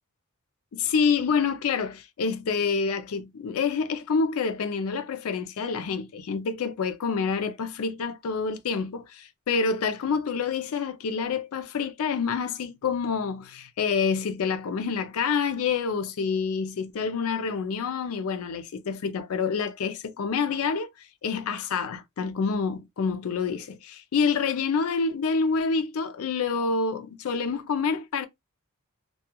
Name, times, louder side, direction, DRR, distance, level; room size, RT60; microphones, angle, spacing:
voice 1, 0.7-20.9 21.2-28.3, left 5 dB, 65° left, 0.4 m, -27 dB
2.3 x 2.2 x 2.7 m
head